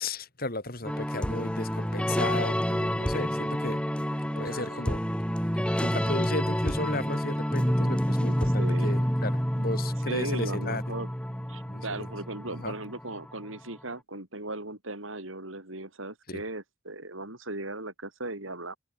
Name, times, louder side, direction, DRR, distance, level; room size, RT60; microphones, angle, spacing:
voice 1, 0.0-3.8 4.4-5.1 5.8-11.0 11.7-12.1 12.5-12.7 16.3-16.4, left 2 dB, 45° left, 3.6 m, -35 dB
sound 1, 0.8-13.4, equal, 5° left, 3.0 m, -28 dB
voice 2, 4.3-5.0 8.4-9.0 10.1-11.1 11.5-18.8, right 2 dB, 75° right, 5.7 m, -38 dB
open air
head